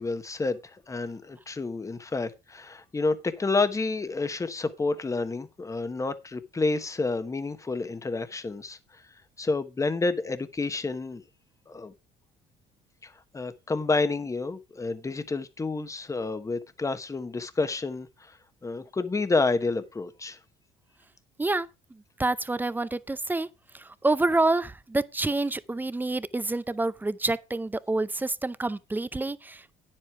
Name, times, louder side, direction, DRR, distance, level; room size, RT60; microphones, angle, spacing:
voice 1, 0.0-9.0 9.4-11.2 11.7-11.9 13.0-18.4 18.6-20.4, left 3 dB, 20° left, 1.1 m, -29 dB
voice 2, 21.4-23.5 23.7-29.7, right 2 dB, 10° right, 0.6 m, -28 dB
9.8 x 7.6 x 4.7 m
cardioid pair, 110°, 17 cm